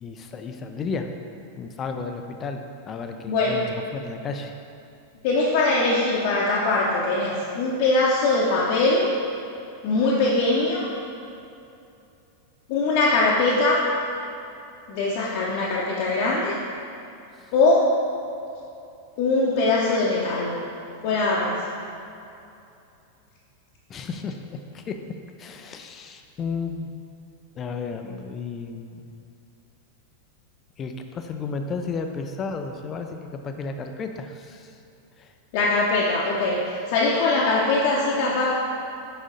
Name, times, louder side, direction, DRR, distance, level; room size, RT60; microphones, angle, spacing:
voice 1, 0.0-1.1 1.6-4.5 17.4-17.5 23.9-25.0 25.4-26.9 27.6-29.2 30.8-34.8 35.2-35.3, left 4 dB, 25° left, 6 dB, 0.4 m, -33 dB
voice 2, 5.2-9.1 9.8-10.8 12.7-13.9 14.9-16.5 17.5-17.8 19.2-20.6 21.0-21.6 35.5-38.4, left 3 dB, 45° left, -6 dB, 0.8 m, -21 dB
6.2 x 5.1 x 4.0 m, 2.7 s
figure-of-eight pair, 90°, 0 cm